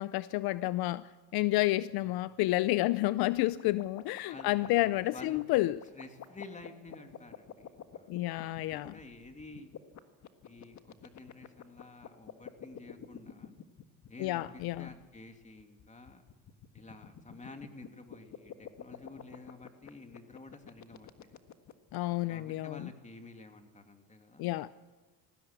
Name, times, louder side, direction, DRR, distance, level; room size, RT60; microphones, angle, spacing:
voice 1, 0.0-5.8 8.1-8.9 14.2-14.9 21.9-22.9 24.4-24.7, left 17 dB, 65° left, 17 dB, 0.6 m, -30 dB
sound 1, 3.1-22.0, left 9 dB, 45° left, 1.6 m, -49 dB
voice 2, 4.3-5.4 5.9-8.1 8.4-9.7 10.4-10.8 11.0-13.5 14.1-16.2 16.7-21.3 22.3-24.4, left 3 dB, 20° left, 5 dB, 2.8 m, -50 dB
20.0 x 15.5 x 8.3 m, 1.4 s
supercardioid pair, 95°, 39 cm